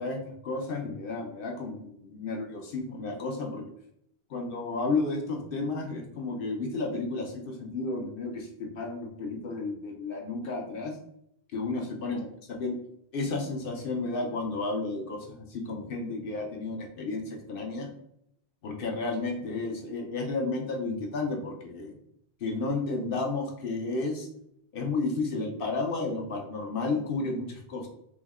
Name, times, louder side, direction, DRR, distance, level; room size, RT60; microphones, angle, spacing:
voice 1, 0.0-3.7 4.3-11.0 11.5-12.8 13.1-17.9 18.6-22.0 22.4-24.3 24.7-27.9, left 3 dB, 60° left, 2 dB, 0.7 m, -32 dB
3.5 x 2.0 x 3.4 m, 0.74 s
omnidirectional pair, 1.1 m